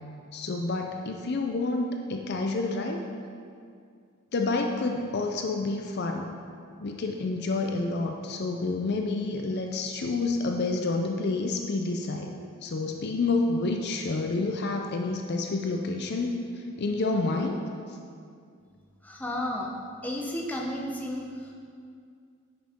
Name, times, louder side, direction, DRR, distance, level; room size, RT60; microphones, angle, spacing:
voice 1, 0.3-3.0 4.3-6.3 6.8-12.3 12.6-16.4 16.8-17.6, left 3 dB, 50° left, 3 dB, 0.5 m, -29 dB
voice 2, 19.0-19.7 20.0-21.5, left 1 dB, 5° left, -2 dB, 0.9 m, -33 dB
9.5 x 6.4 x 3.6 m, 2.3 s
head